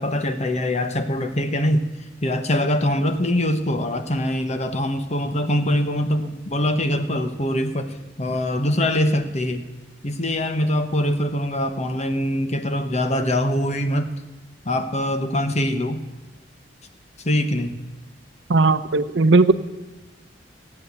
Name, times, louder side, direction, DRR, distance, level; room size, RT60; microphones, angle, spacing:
voice 1, 0.0-1.8 2.2-9.7 10.0-14.1 14.6-16.0 17.2-17.8, left 1 dB, 40° left, 8 dB, 1.1 m, -23 dB
voice 2, 18.5-19.5, right 3 dB, 70° right, 13 dB, 0.7 m, -16 dB
15.5 x 8.8 x 8.0 m, 1.1 s
head